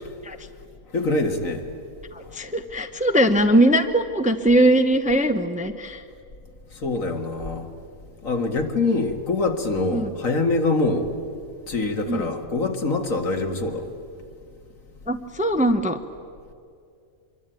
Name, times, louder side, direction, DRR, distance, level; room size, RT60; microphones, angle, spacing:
voice 1, 0.9-1.7 6.8-7.7 8.2-11.1 11.7-13.9, left 3 dB, 65° left, 2.3 m, -24 dB
voice 2, 2.1-6.0 9.9-10.1 12.1-12.3 15.1-16.0, right 1 dB, 5° right, 0.8 m, -20 dB
25.5 x 23.5 x 9.1 m
omnidirectional pair, 1.5 m